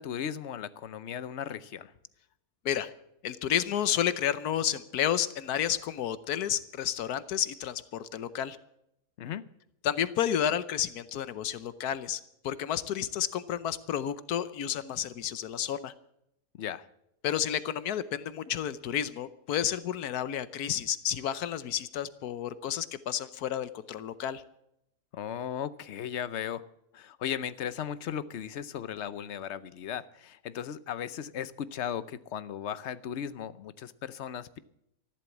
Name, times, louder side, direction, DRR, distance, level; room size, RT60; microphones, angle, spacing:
voice 1, 0.0-1.9 9.2-9.4 16.6-16.9 25.1-26.6 26.9-34.6, left 9 dB, 55° left, 16 dB, 0.9 m, -36 dB
voice 2, 3.2-8.6 9.8-15.9 17.2-24.4, left 10 dB, 85° left, 15 dB, 1.3 m, -31 dB
14.0 x 12.0 x 7.2 m, 0.79 s
omnidirectional pair, 1.6 m